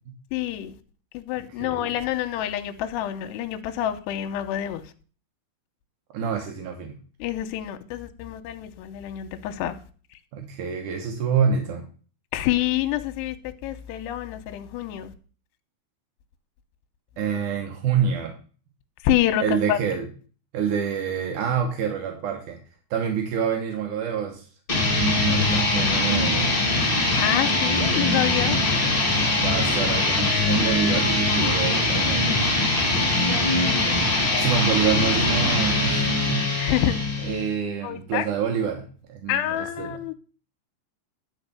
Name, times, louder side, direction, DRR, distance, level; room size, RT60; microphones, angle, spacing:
voice 1, 0.3-0.8 1.1-4.8 7.2-9.8 12.3-13.4 13.6-15.1 19.0-19.8 27.2-28.6 32.9-33.9 34.3-34.6 36.6-37.0 37.8-38.3 39.3-40.1, left 12 dB, 80° left, 2.7 m, -27 dB
voice 2, 1.6-1.9 6.1-7.0 10.3-11.8 17.2-18.3 19.4-20.1 20.5-22.6 22.9-24.5 24.7-24.9 25.3-26.6 29.4-32.3 34.4-36.6 37.2-40.0, right 7 dB, 70° right, 1.9 m, -27 dB
sound 1, 24.7-37.5, left 2 dB, 35° left, 0.8 m, -22 dB
10.5 x 4.9 x 6.9 m
omnidirectional pair, 5.5 m